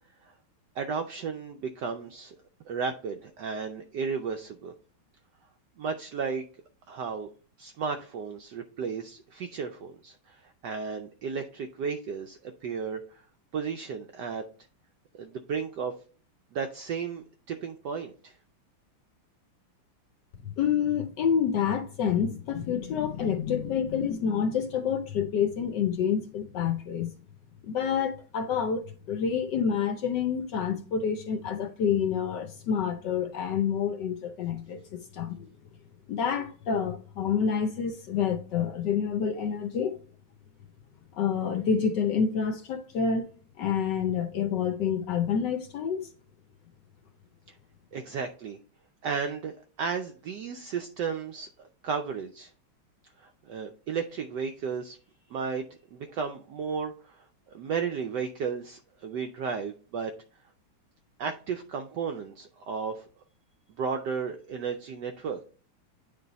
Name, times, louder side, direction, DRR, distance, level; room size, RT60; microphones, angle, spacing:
voice 1, 0.8-2.3 2.7-4.7 5.8-6.4 6.9-7.3 7.6-13.2 13.5-14.4 15.1-15.9 16.5-18.4 47.9-48.6 49.0-52.5 53.2-55.0 55.3-60.1 61.2-63.1 63.8-65.4, right 5 dB, 80° right, 0.9 m, -34 dB
voice 2, 20.6-27.1 27.6-34.8 35.1-35.5 36.1-40.0 41.1-43.3 43.6-46.1, left 7 dB, 70° left, 1.1 m, -28 dB
9.1 x 3.3 x 4.0 m
omnidirectional pair, 2.4 m